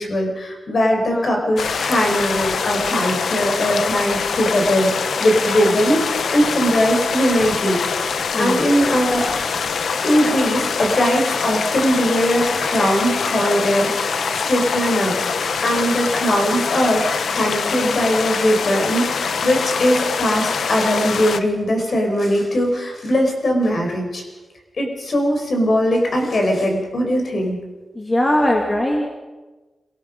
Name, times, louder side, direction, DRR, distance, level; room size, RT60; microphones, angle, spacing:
voice 1, 0.0-4.9 5.2-9.2 10.0-15.1 15.4-24.2 24.8-27.6, equal, 50° left, 2 dB, 4.8 m, -20 dB
voice 2, 1.1-1.4 8.3-8.7 27.9-29.1, left 1 dB, 20° left, 0 dB, 2.3 m, -20 dB
sound 1, 1.6-21.4, left 5 dB, 80° left, 1.0 m, -24 dB
26.5 x 18.5 x 5.3 m, 1.2 s
wide cardioid pair, 155°, 0 cm